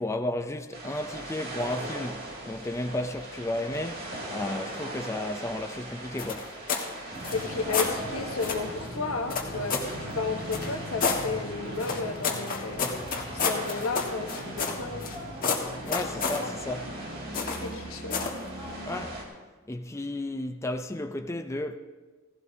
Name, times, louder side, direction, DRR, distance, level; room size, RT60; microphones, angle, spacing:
voice 1, 0.0-6.5 15.9-16.9 18.9-19.3 19.7-21.8, left 1 dB, 15° left, 0.4 m, -33 dB
sound 1, 0.7-19.2, right 1 dB, 45° right, 2.5 m, -41 dB
sound 2, 6.2-6.9 7.2-7.9 8.4-8.7 9.3-9.9 10.5-11.2 11.8-15.2 15.4-16.4 17.3-17.7 18.1-18.4, left 5 dB, 45° left, 1.6 m, -30 dB
voice 2, 7.0-12.9 13.3-15.0 16.2-16.5 17.3-18.2, left 4 dB, 80° left, 1.1 m, -33 dB
sound 3, 7.1-19.0, equal, 25° right, 5.0 m, -40 dB
16.5 x 15.5 x 2.8 m
head